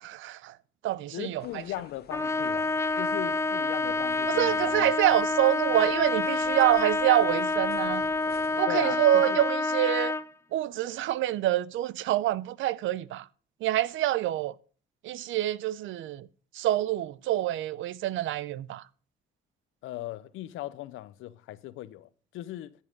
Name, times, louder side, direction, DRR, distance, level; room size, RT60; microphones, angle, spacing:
voice 1, 0.0-0.5 0.8-1.4 4.3-8.0 8.6-10.1 10.5-13.3 13.6-14.5 15.0-16.3 16.5-18.8, right 14 dB, 80° right, 0.5 m, -26 dB
voice 2, 1.1-2.7 3.0-4.9 8.7-9.5 19.8-22.7, left 14 dB, 90° left, 0.6 m, -38 dB
sound 1, 1.4-8.7, left 7 dB, 55° left, 1.1 m, -51 dB
Trumpet, 2.1-10.3, left 3 dB, 15° left, 0.4 m, -28 dB
14.0 x 5.5 x 5.2 m
cardioid pair, 90°, 20 cm